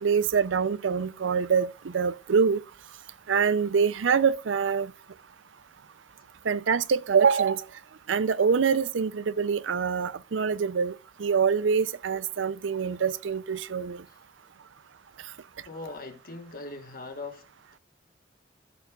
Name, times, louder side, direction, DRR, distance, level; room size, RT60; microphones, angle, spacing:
voice 1, 0.0-2.6 3.3-4.9 6.4-7.7 8.1-14.0, right 6 dB, 85° right, 0.5 m, -25 dB
voice 2, 15.6-17.4, left 3 dB, 50° left, 1.4 m, -40 dB
13.5 x 6.9 x 2.4 m
head